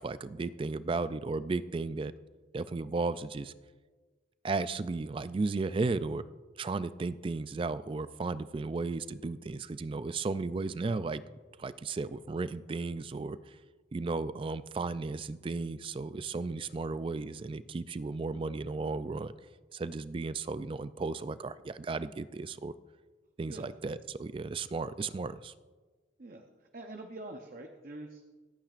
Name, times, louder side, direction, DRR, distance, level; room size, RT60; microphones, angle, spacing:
voice 1, 0.0-2.1 2.5-3.5 4.4-6.2 6.6-11.2 11.6-13.6 13.9-19.3 19.7-22.7 23.4-25.5, right 3 dB, 25° right, 14 dB, 0.3 m, -34 dB
voice 2, 26.2-28.2, right 2 dB, 45° right, 4 dB, 0.7 m, -46 dB
25.0 x 8.8 x 2.5 m, 1.4 s
head